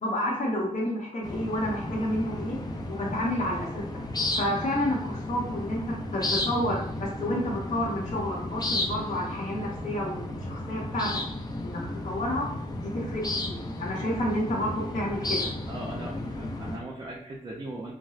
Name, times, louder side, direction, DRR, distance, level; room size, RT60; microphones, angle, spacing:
voice 1, 0.0-2.6 2.9-4.0 4.3-11.1 11.6-12.5 12.8-15.5, left 1 dB, 60° left, -4 dB, 0.9 m, -30 dB
sound 1, 1.2-16.8, left 1 dB, 30° left, 0.4 m, -33 dB
voice 2, 15.7-17.9, right 1 dB, 35° right, -5 dB, 0.5 m, -39 dB
4.2 x 2.0 x 2.4 m, 0.63 s
wide cardioid pair, 170°, 14 cm